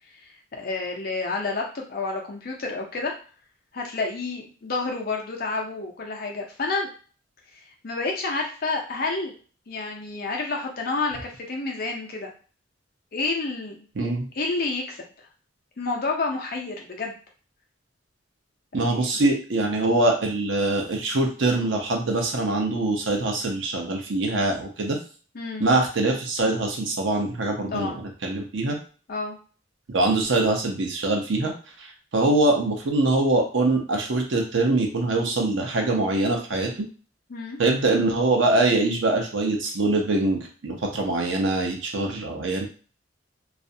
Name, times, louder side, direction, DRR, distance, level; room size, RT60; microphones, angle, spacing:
voice 1, 0.5-3.1 3.7-6.9 7.8-9.3 9.7-12.3 13.1-13.9 14.4-15.0 15.8-17.2 18.9-19.1 25.3-25.7 27.7-28.0 29.1-29.4 37.3-37.6, left 3 dB, 50° left, 0 dB, 0.6 m, -29 dB
voice 2, 14.0-14.3 18.7-25.0 25.6-28.8 29.9-31.5 32.1-36.9 37.6-42.7, right 2 dB, 80° right, 2 dB, 0.6 m, -23 dB
2.4 x 2.1 x 2.6 m, 0.38 s
head